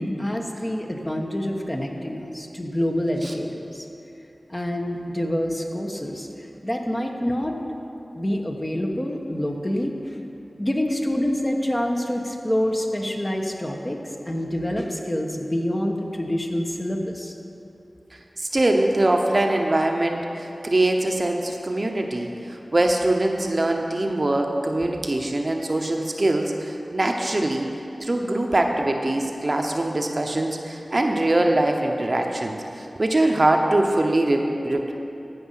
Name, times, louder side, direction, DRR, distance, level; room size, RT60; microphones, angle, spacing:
voice 1, 0.2-3.9 4.5-6.3 6.6-7.6 8.1-10.0 10.6-17.3, equal, 25° left, 1 dB, 1.2 m, -26 dB
voice 2, 18.4-27.7 28.0-34.9, right 1 dB, 50° right, 3 dB, 0.8 m, -23 dB
15.0 x 5.4 x 5.7 m, 2.8 s
cardioid pair, 40°, 0 cm